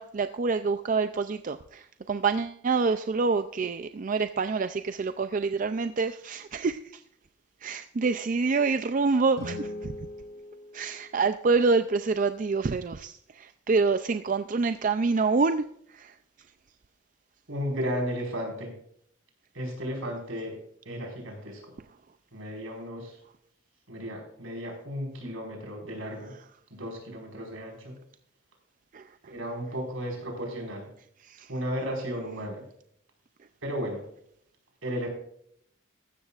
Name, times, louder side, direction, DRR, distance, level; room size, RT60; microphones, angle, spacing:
voice 1, 0.0-1.8 2.1-6.8 7.6-9.7 10.7-13.1 13.4-15.6 16.0-16.1 28.9-29.0, right 4 dB, 40° right, 10 dB, 0.4 m, -26 dB
sound 1, 9.3-11.5, left 1 dB, 75° left, 3.3 m, -41 dB
voice 2, 17.5-18.7 19.5-20.5 20.8-21.6 22.3-23.2 23.9-26.3 26.7-28.0 29.3-30.9 31.5-32.6 33.6-34.0 34.8-35.1, equal, 75° right, 1 dB, 4.8 m, -34 dB
15.0 x 12.5 x 2.5 m, 0.67 s
head